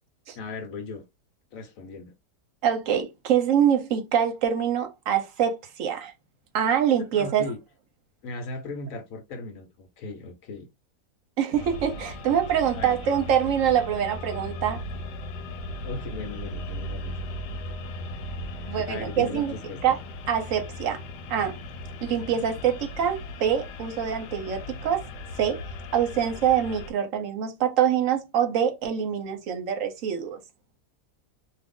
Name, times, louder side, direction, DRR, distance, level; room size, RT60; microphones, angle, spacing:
voice 1, 0.3-1.0 1.5-2.1 7.1-7.6 8.2-10.7 12.7-13.0 15.8-17.1 18.7-19.9, left 3 dB, 60° left, 1.1 m, -37 dB
voice 2, 2.6-6.1 6.5-7.5 11.4-14.8 18.7-19.5 19.8-20.0 20.3-21.0 21.3-21.6 22.0-25.1 25.4-25.6 25.9-30.4, right 9 dB, 60° right, 1.0 m, -25 dB
sound 1, 11.5-26.9, left 1 dB, 85° left, 1.2 m, -37 dB
2.6 x 2.4 x 3.5 m
omnidirectional pair, 1.7 m